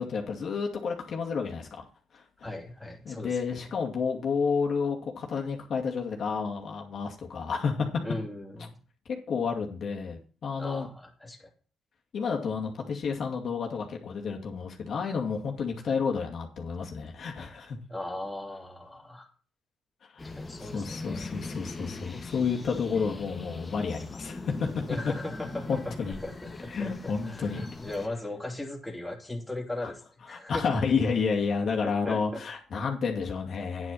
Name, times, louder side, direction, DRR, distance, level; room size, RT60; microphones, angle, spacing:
voice 1, 0.0-1.8 2.1-2.2 3.1-7.9 9.1-10.9 12.1-17.8 20.1-20.3 20.6-24.7 25.7-26.2 26.7-27.7 29.8-29.9 30.3-33.9, left 5 dB, 55° left, 0 dB, 2.4 m, -30 dB
voice 2, 2.4-3.4 8.0-8.8 10.6-11.5 17.4-17.6 17.9-19.3 20.4-21.3 22.9-23.1 24.9-25.9 26.2-30.0 30.3-30.7 31.8-32.4, left 2 dB, 5° left, 0 dB, 3.0 m, -38 dB
sound 1, 20.2-28.1, left 3 dB, 25° left, 1.6 m, -41 dB
9.6 x 8.9 x 5.6 m, 0.39 s
cardioid pair, 90°, 0 cm